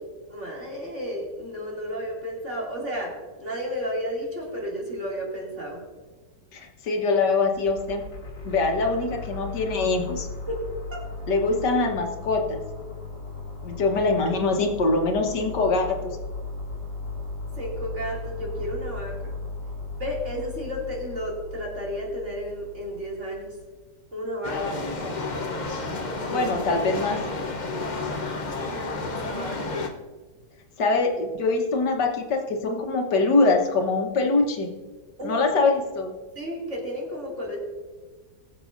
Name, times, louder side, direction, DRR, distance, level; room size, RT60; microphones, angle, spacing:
voice 1, 0.3-3.1 3.4-5.8 10.5-10.6 10.9-11.0 17.5-19.3 20.0-23.6 24.1-24.6 26.2-26.5 28.5-29.8 35.2-35.5 36.3-37.6, equal, 40° right, -3 dB, 2.8 m, -32 dB
voice 2, 6.5-8.0 8.4-10.3 11.3-12.6 13.6-16.0 24.5-25.1 26.3-27.2 30.8-34.7 35.2-36.1, left 3 dB, 80° left, 2 dB, 1.8 m, -23 dB
sound 1, 7.4-23.6, left 3 dB, 55° left, 2.7 m, -37 dB
sound 2, 24.4-29.9, left 3 dB, 35° left, 0.7 m, -31 dB
21.0 x 7.4 x 2.6 m, 1.4 s
omnidirectional pair, 1.8 m